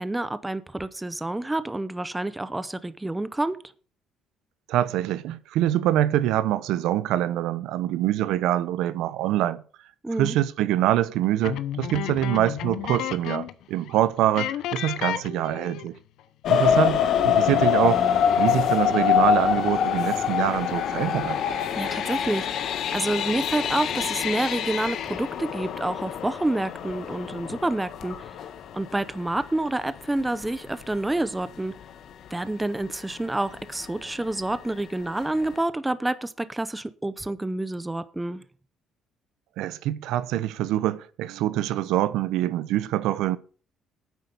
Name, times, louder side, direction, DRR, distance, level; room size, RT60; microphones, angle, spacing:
voice 1, 0.0-3.6 10.0-10.4 21.8-28.3 28.7-31.7 32.3-38.4, right 2 dB, 10° right, 0.7 m, -28 dB
voice 2, 4.7-9.6 10.2-16.0 16.5-21.4 39.6-43.4, right 13 dB, 85° right, 0.7 m, -25 dB
sound 1, 11.4-13.6 13.9-14.0 14.3-16.0, left 11 dB, 75° left, 0.9 m, -32 dB
sound 2, 16.4-29.1 29.7-29.8 30.3-30.5 30.8-30.9, left 8 dB, 60° left, 1.2 m, -25 dB
9.4 x 8.1 x 6.8 m
cardioid pair, 145°, 0 cm